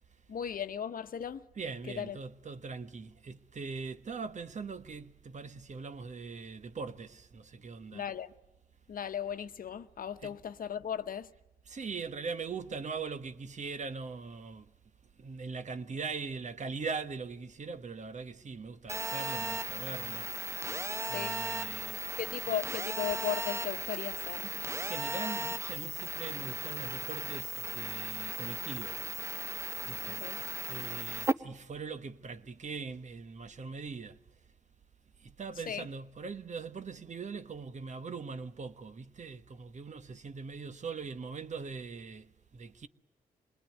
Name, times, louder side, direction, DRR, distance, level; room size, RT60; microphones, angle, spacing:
voice 1, 0.3-1.4 1.9-2.2 7.9-8.3 8.9-11.3 21.1-21.4 22.2-24.5 30.0-30.4 35.7-35.9, left 8 dB, 65° left, 1.0 m, -36 dB
voice 2, 1.6-8.0 10.2-10.4 11.6-14.7 15.2-20.7 21.1-22.1 24.4-29.1 29.8-34.2 35.2-42.9, right 4 dB, 50° right, 1.3 m, -41 dB
Telephone, 18.9-31.3, right 1 dB, 15° right, 1.0 m, -36 dB
27.0 x 20.5 x 9.3 m
cardioid pair, 60°, 16 cm